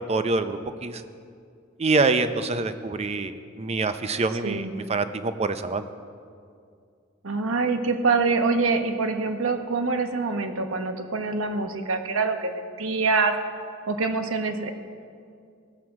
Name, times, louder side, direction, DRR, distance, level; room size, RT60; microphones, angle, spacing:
voice 1, 0.1-1.0 1.8-5.9, right 3 dB, 30° right, 10 dB, 0.5 m, -25 dB
voice 2, 7.2-13.3 13.9-14.7, right 4 dB, 75° right, 6 dB, 1.0 m, -25 dB
18.5 x 7.5 x 4.7 m, 2.3 s
head